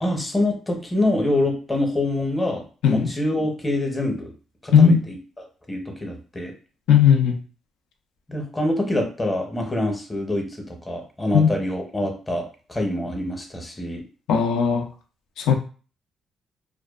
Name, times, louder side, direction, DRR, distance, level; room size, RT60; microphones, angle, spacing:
voice 1, 0.0-4.3 4.6-6.5 8.3-14.0, left 1 dB, 15° left, 2 dB, 0.7 m, -26 dB
voice 2, 6.9-7.4 11.3-11.5 14.3-14.9 15.4-15.6, left 7 dB, 80° left, 4 dB, 0.4 m, -16 dB
2.5 x 2.2 x 2.3 m, 0.37 s
cardioid pair, 90°, 0 cm